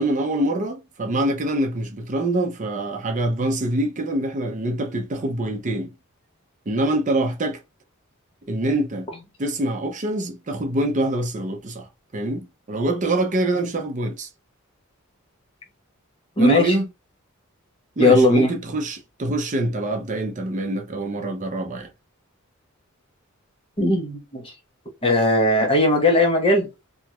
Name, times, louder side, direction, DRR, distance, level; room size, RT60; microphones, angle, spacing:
voice 1, 0.0-5.9 6.7-7.6 8.5-9.1 9.4-11.9 12.1-14.3 16.4-16.9 18.0-21.9, right 1 dB, 35° right, 0.6 m, -25 dB
voice 2, 16.4-16.8 18.0-18.5 23.8-24.5 25.0-26.7, left 1 dB, 25° left, 0.9 m, -18 dB
2.9 x 2.4 x 2.8 m
head